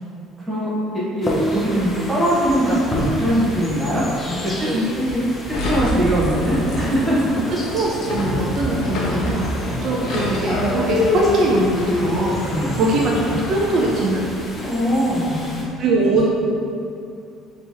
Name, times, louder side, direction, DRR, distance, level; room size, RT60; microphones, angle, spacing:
sound 1, 1.2-15.7, equal, 15° left, 0.6 m, -31 dB
voice 1, 1.2-4.5 4.9-5.2 5.7-7.3 9.6-9.8 12.4-12.8 14.6-15.4, equal, 10° right, -9 dB, 1.3 m, -21 dB
voice 2, 4.6-4.9 7.5-9.5 9.8-12.4 12.7-14.2 15.8-16.3, right 2 dB, 55° right, -3 dB, 0.4 m, -21 dB
sound 2, 5.5-14.3, left 2 dB, 65° left, 0.7 m, -25 dB
3.3 x 2.9 x 4.4 m, 2.5 s
cardioid pair, 130°, 0 cm